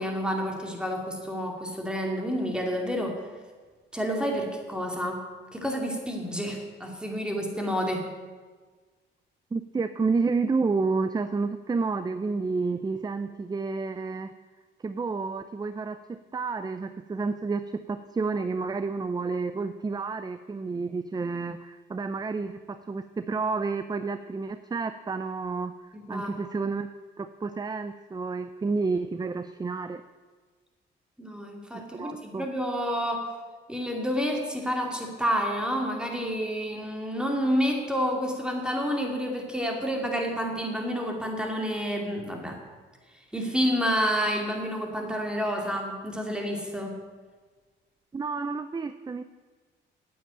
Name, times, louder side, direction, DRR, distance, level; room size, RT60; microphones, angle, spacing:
voice 1, 0.0-3.2 3.9-8.1 25.9-26.4 31.2-33.3 33.7-42.6 43.3-47.0, equal, 5° right, 2 dB, 2.6 m, -29 dB
voice 2, 9.5-14.3 14.8-26.9 27.2-30.0 31.7-32.5 48.1-49.2, right 4 dB, 20° right, 12 dB, 0.5 m, -30 dB
9.1 x 8.7 x 8.8 m, 1.4 s
cardioid pair, 90°, 20 cm